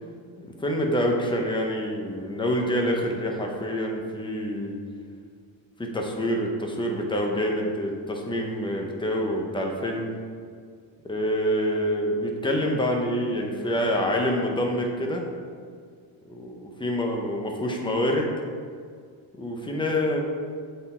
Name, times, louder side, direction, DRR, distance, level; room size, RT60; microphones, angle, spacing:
voice 1, 0.4-4.7 5.8-10.1 11.1-15.3 16.3-18.3 19.4-20.2, equal, 10° left, 0 dB, 0.7 m, -26 dB
7.7 x 4.1 x 4.3 m, 2.1 s
cardioid pair, 165°, 48 cm